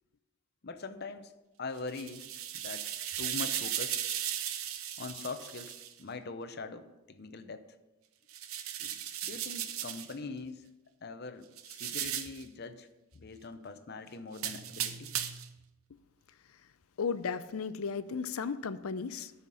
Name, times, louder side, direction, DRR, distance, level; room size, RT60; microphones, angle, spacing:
voice 1, 0.6-2.3 2.5-2.9 3.2-4.0 5.0-7.6 8.8-10.7 11.0-12.9 13.1-15.1, left 3 dB, 45° left, 10 dB, 0.7 m, -43 dB
sound 1, 1.8-5.9 8.3-10.1 11.6-12.4 14.3-15.5, right 10 dB, 70° right, 0.8 m, -36 dB
voice 2, 17.0-19.3, left 5 dB, 75° left, 14 dB, 0.5 m, -35 dB
13.0 x 5.8 x 5.5 m, 1.0 s
head